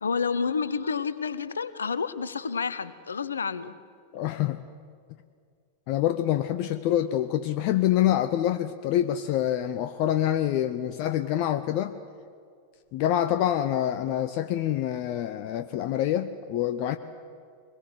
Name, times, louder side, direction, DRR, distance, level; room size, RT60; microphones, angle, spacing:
voice 1, 0.0-3.7, left 5 dB, 70° left, 15 dB, 0.9 m, -29 dB
voice 2, 4.1-4.6 5.9-11.9 12.9-17.0, left 12 dB, 45° left, 10 dB, 0.8 m, -26 dB
23.0 x 21.0 x 7.9 m, 2.2 s
figure-of-eight pair, 90°, 0 cm